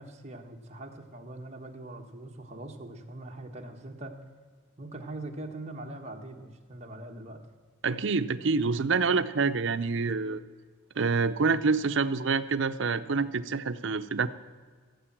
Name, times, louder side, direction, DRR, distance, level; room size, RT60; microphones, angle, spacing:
voice 1, 0.0-4.1 4.8-7.4, right 2 dB, 35° right, 2 dB, 1.3 m, -42 dB
voice 2, 7.8-10.4 11.0-14.3, right 4 dB, 65° right, 11 dB, 0.6 m, -27 dB
16.0 x 7.9 x 7.3 m, 1.5 s
head